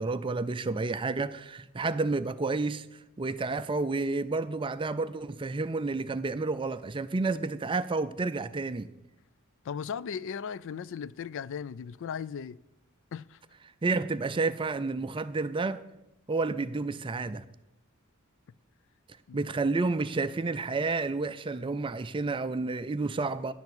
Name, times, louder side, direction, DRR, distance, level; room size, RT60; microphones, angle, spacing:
voice 1, 0.0-2.9 3.2-8.9 13.8-15.8 16.3-17.4 19.3-23.5, right 3 dB, 25° right, 0.4 m, -30 dB
voice 2, 9.6-12.6 13.1-13.4 19.3-19.4, left 7 dB, 60° left, 0.4 m, -37 dB
11.0 x 7.1 x 7.8 m
head